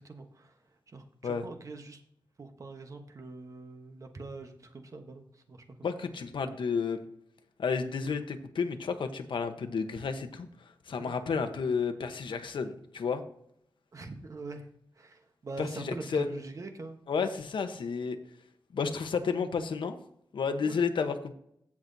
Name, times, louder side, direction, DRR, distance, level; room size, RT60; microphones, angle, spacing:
voice 1, 0.0-2.0 2.4-5.9 11.0-11.1 13.9-14.7 14.9-17.0 20.6-20.8, right 3 dB, 40° right, 5 dB, 1.1 m, -44 dB
voice 2, 5.8-7.0 7.6-10.5 10.9-13.2 15.6-16.3 17.1-18.2 18.7-20.0 20.3-21.3, left 5 dB, 80° left, 7 dB, 0.9 m, -31 dB
16.0 x 5.9 x 2.7 m, 0.70 s
wide cardioid pair, 160°, 8 cm